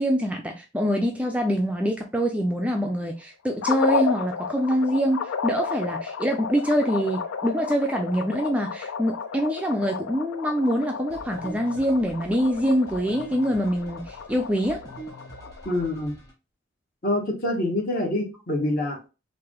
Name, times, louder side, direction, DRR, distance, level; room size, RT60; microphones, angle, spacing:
voice 1, 0.0-14.8, equal, 5° right, 2 dB, 0.3 m, -25 dB
sound 1, 3.6-15.9, left 6 dB, 80° left, 0.3 m, -33 dB
sound 2, 11.1-16.3, right 2 dB, 20° left, 1.3 m, -44 dB
voice 2, 15.6-16.1 17.0-19.1, left 1 dB, 45° left, 1 dB, 1.1 m, -26 dB
3.4 x 2.6 x 3.5 m, 0.30 s
head